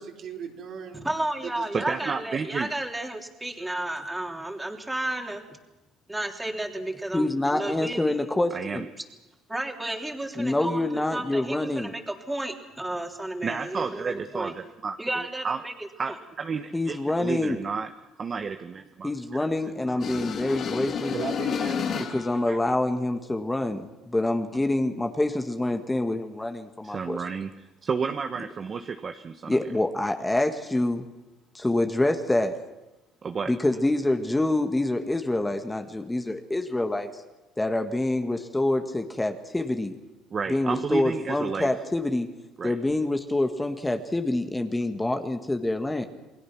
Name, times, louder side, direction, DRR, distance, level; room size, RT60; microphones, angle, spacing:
voice 1, 0.0-1.1 1.4-2.1 21.1-22.1, right 6 dB, 55° right, 2 dB, 3.8 m, -37 dB
voice 2, 0.9-5.6 6.1-8.2 9.5-14.5 15.0-16.2, right 1 dB, 10° right, 3 dB, 3.4 m, -32 dB
voice 3, 1.7-2.7 8.5-8.8 13.4-15.6 16.0-17.9 18.2-19.1 20.0-20.1 22.5-22.6 26.8-29.6 33.2-33.5 40.3-41.7 42.6-42.8, right 5 dB, 40° right, 7 dB, 1.3 m, -31 dB
voice 4, 7.1-8.9 10.4-11.9 16.7-17.6 19.0-21.1 22.1-27.2 29.5-31.1 31.5-32.6 33.5-37.2 37.6-39.9 40.5-42.3 42.6-46.1, left 2 dB, 10° left, 6 dB, 1.7 m, -26 dB
sound 1, 20.0-22.5, left 7 dB, 50° left, 2.6 m, -30 dB
28.5 x 20.5 x 6.1 m, 1.0 s
supercardioid pair, 90°, 0 cm